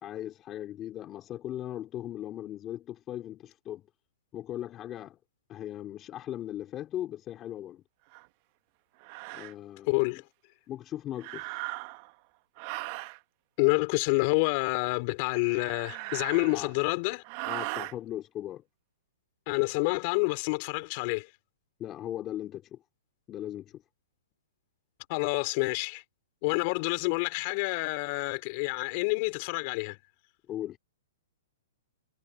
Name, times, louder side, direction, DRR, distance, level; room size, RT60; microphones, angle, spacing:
voice 1, 0.0-3.9 4.3-5.2 5.5-7.8 9.3-10.2 10.7-11.6 16.5-16.7 17.4-18.6 21.8-22.8 23.3-23.8 30.5-30.8, left 12 dB, 25° left, 2.5 m, -38 dB
sound 1, 8.1-8.3 9.0-9.5 11.2-12.1 12.6-13.2 15.4-16.8 17.2-17.9, right 24 dB, 40° right, 1.3 m, -38 dB
voice 2, 9.9-10.2 13.6-17.2 19.5-21.3 25.1-26.0 26.4-30.0, left 29 dB, 40° left, 3.6 m, -28 dB
hypercardioid pair, 140°, 0 cm